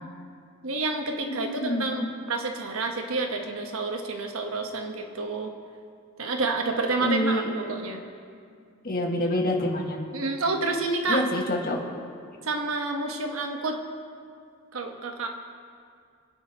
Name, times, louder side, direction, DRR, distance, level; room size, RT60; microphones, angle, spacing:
voice 1, 0.6-5.5 6.2-8.1 10.1-11.2 12.4-13.8 14.7-15.3, right 3 dB, 70° right, 3 dB, 1.2 m, -29 dB
voice 2, 1.2-2.1 7.0-7.5 8.8-10.0 11.1-11.8, left 1 dB, 45° left, -1 dB, 1.8 m, -27 dB
26.0 x 10.0 x 3.0 m, 2.3 s
head